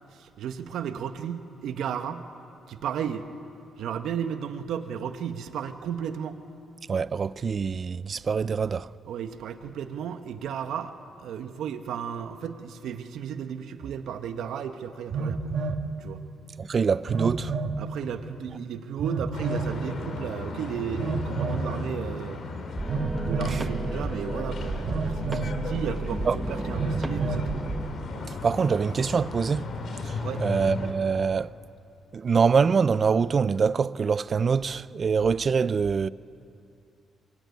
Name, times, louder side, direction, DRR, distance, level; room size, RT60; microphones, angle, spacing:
voice 1, 0.1-2.2 2.7-3.3 3.8-6.4 9.0-10.9 11.2-15.5 16.0-16.2 17.8-22.4 23.2-25.3 25.6-27.6 30.2-30.4, right 8 dB, 75° right, 1.4 m, -34 dB
voice 2, 6.9-8.9 16.6-17.5 23.5-23.6 26.3-26.4 28.3-29.7 30.0-31.5 32.1-36.1, right 5 dB, 40° right, 0.6 m, -24 dB
Telephone, 13.8-13.9 15.1-15.8 17.1-17.8 19.0-19.7 21.0-21.7 22.9-23.6 24.9-25.6 26.8-27.5, right 4 dB, 60° right, 1.8 m, -29 dB
sound 1, 19.3-30.9, left 3 dB, 60° left, 4.0 m, -36 dB
sound 2, 22.8-27.9, right 3 dB, 20° right, 1.7 m, -33 dB
24.0 x 22.5 x 9.5 m
cardioid pair, 90°, 0 cm